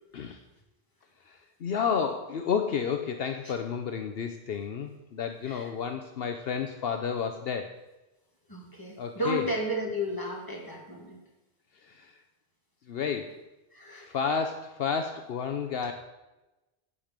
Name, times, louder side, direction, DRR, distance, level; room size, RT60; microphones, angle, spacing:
voice 1, 1.2-7.8 9.0-9.5 11.7-12.2 12.9-13.4 14.0-15.9, left 6 dB, 70° left, 6 dB, 0.9 m, -31 dB
voice 2, 8.5-11.2 13.7-14.2, equal, 20° left, -1 dB, 2.4 m, -33 dB
15.0 x 5.2 x 7.3 m, 1.0 s
omnidirectional pair, 1.1 m